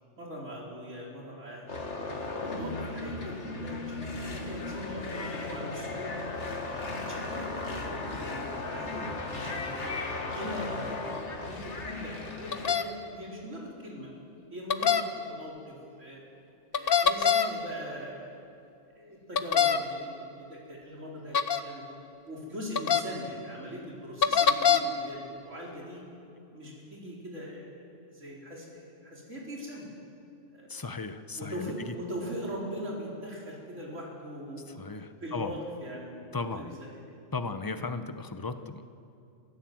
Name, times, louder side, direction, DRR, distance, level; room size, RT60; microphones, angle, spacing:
voice 1, 0.2-1.8 2.4-6.1 7.1-10.0 10.3-14.1 14.5-16.2 16.7-18.4 18.9-21.8 22.2-26.0 26.5-29.9 30.5-30.9 31.4-34.6 35.2-36.9 37.7-37.9, equal, 85° right, -3 dB, 5.0 m, -41 dB
sound 1, 1.7-12.7, left 3 dB, 70° left, 2.2 m, -36 dB
sound 2, 12.5-12.8 14.7-15.0 16.7-17.5 19.4-19.8 21.3-21.6 22.7-23.0 24.2-24.8, left 7 dB, 50° left, 1.1 m, -23 dB
voice 2, 30.7-31.7 34.8-35.5 36.3-36.8 37.3-38.8, left 3 dB, 20° left, 9 dB, 0.8 m, -36 dB
26.5 x 15.5 x 7.8 m, 2.6 s
omnidirectional pair, 1.3 m